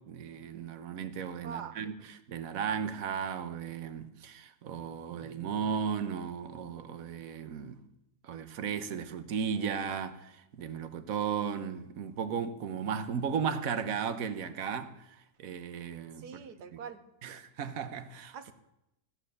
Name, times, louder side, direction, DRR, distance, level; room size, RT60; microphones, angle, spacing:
voice 1, 0.1-7.8 8.2-16.3 17.2-18.4, right 7 dB, 60° right, 1.3 m, -35 dB
voice 2, 1.4-1.8 16.2-17.0 18.3-18.5, right 6 dB, 80° right, 1.6 m, -43 dB
15.0 x 9.6 x 6.6 m
omnidirectional pair, 1.7 m